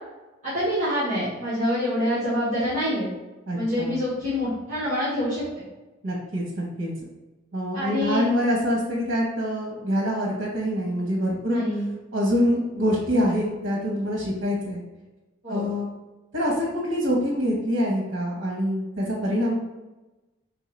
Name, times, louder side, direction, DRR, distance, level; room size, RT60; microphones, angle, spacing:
voice 1, 0.4-3.1 3.5-5.4 7.7-8.2 11.5-11.8 15.4-15.7, left 1 dB, 40° right, -13 dB, 1.5 m, -26 dB
voice 2, 3.5-4.0 6.0-6.9 7.5-11.6 12.1-14.8 15.5-15.9 16.3-19.5, equal, 80° right, -2 dB, 1.0 m, -25 dB
5.4 x 3.1 x 3.2 m, 1.1 s
head